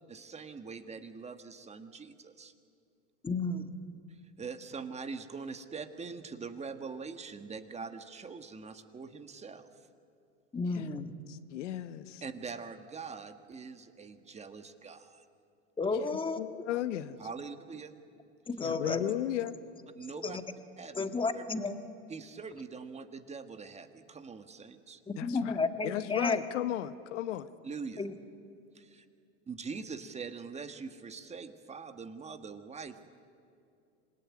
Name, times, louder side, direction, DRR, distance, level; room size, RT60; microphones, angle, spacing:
voice 1, 0.1-2.5 4.1-9.7 12.2-15.2 17.2-17.9 20.0-20.4 20.8-21.1 21.3-21.4 22.1-25.0 27.6-28.0 28.7-29.0 29.5-33.2, right 5 dB, 20° right, 8 dB, 1.6 m, -43 dB
voice 2, 3.2-3.7 10.5-11.1 15.8-16.4 18.5-19.0 20.2-20.4 20.9-21.8 25.1-26.4 28.0-28.1, left 4 dB, 15° left, 8 dB, 1.7 m, -32 dB
voice 3, 11.3-12.2 16.4-17.2 18.6-19.6 25.2-25.6 25.8-27.5, left 12 dB, 85° left, 12 dB, 1.2 m, -35 dB
26.5 x 20.5 x 9.7 m, 2.5 s
supercardioid pair, 115°, 35 cm